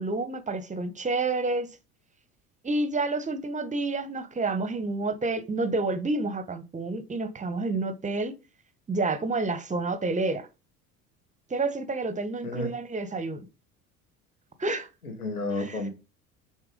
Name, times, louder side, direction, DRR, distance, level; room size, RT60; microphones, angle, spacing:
voice 1, 0.0-1.7 2.6-8.4 8.9-10.5 11.5-13.4 14.6-14.9 15.6-15.8, right 3 dB, 15° right, 1.4 m, -29 dB
voice 2, 15.0-15.9, left 2 dB, 85° left, 2.5 m, -31 dB
7.2 x 4.5 x 5.3 m
figure-of-eight pair, 65°, 43 cm